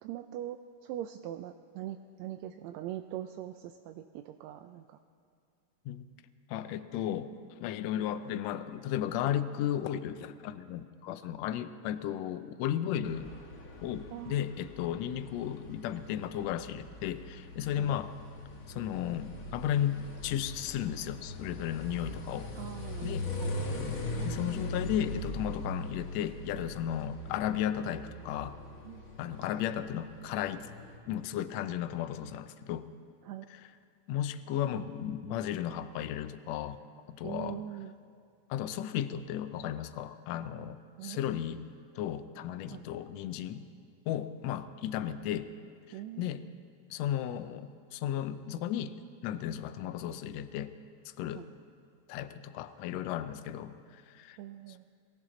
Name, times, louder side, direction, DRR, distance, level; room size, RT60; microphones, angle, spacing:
voice 1, 0.0-5.0 14.1-14.4 17.8-17.9 22.6-23.5 28.8-29.0 33.2-33.5 37.2-37.9 41.0-41.2 42.7-42.8 45.9-46.5 51.3-51.5 54.4-54.9, right 12 dB, 80° right, 7 dB, 1.7 m, -42 dB
voice 2, 6.5-13.3 13.8-18.1 18.7-22.5 23.0-23.3 24.2-28.6 29.2-30.7 31.1-32.9 33.5-33.7 34.1-36.8 37.1-37.6 38.5-41.6 41.9-43.7 44.1-45.5 45.9-46.5 46.9-48.9 49.2-50.7 51.2-51.4 52.1-54.4 54.7-54.9, left 10 dB, 75° left, 12 dB, 1.6 m, -34 dB
sound 1, 13.1-31.0, left 1 dB, 50° left, 1.0 m, -41 dB
22.5 x 17.0 x 3.8 m, 2.3 s
omnidirectional pair, 3.5 m